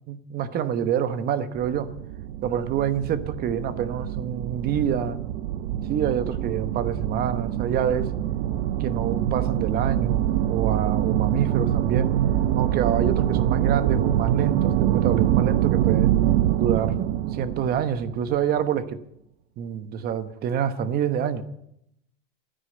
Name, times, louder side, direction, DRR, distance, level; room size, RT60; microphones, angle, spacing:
voice 1, 0.1-1.9 2.4-5.2 5.9-8.1 8.8-12.1 12.5-16.1 16.6-19.0 19.6-21.4, right 8 dB, 30° right, 13 dB, 1.1 m, -27 dB
sound 1, 1.6-18.6, right 11 dB, 65° right, 1.0 m, -25 dB
15.5 x 10.0 x 8.0 m, 0.75 s
supercardioid pair, 155°, 29 cm